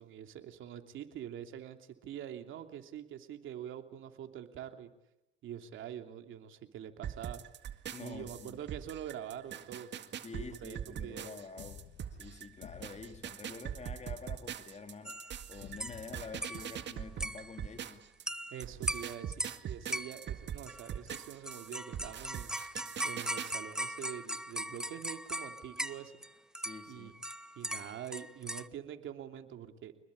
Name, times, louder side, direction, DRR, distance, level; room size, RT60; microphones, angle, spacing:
voice 1, 0.0-4.9 5.4-7.4 8.0-9.9 10.3-11.3 18.5-22.5 23.0-26.1 26.9-27.1 27.6-29.9, right 10 dB, 80° right, 6 dB, 3.0 m, -45 dB
sound 1, 7.0-18.2 18.6-23.5, right 9 dB, 65° right, 2.0 m, -42 dB
voice 2, 7.9-8.6 10.2-11.8 12.2-15.2 15.5-18.0 26.6-27.1, left 4 dB, 35° left, 7 dB, 3.0 m, -47 dB
sound 2, 8.1-9.5 11.6-14.5 15.6-17.8, left 10 dB, 85° left, 1.9 m, -55 dB
sound 3, 15.1-15.4 15.8-16.0 16.4-16.8 17.2-17.6 18.3-18.6 18.9-19.6 19.9-20.4 20.7-26.3 26.5-28.7, right 1 dB, 5° right, 1.1 m, -39 dB
26.5 x 21.5 x 10.0 m, 0.85 s
cardioid pair, 90°, 20 cm